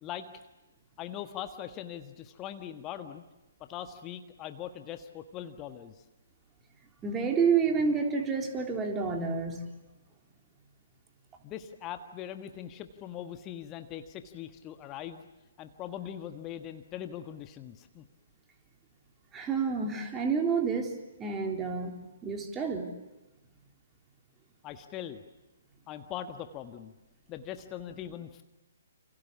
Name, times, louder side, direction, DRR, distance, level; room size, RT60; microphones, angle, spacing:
voice 1, 1.0-3.2 3.6-5.9 11.4-15.2 15.6-18.0 24.6-25.2 25.9-26.9 27.3-28.4, left 10 dB, 20° left, 8 dB, 1.4 m, -41 dB
voice 2, 7.0-9.7 19.3-21.9 22.2-22.9, right 5 dB, 15° right, 2 dB, 3.7 m, -29 dB
29.0 x 27.0 x 7.1 m, 1.0 s
figure-of-eight pair, 130°, 0 cm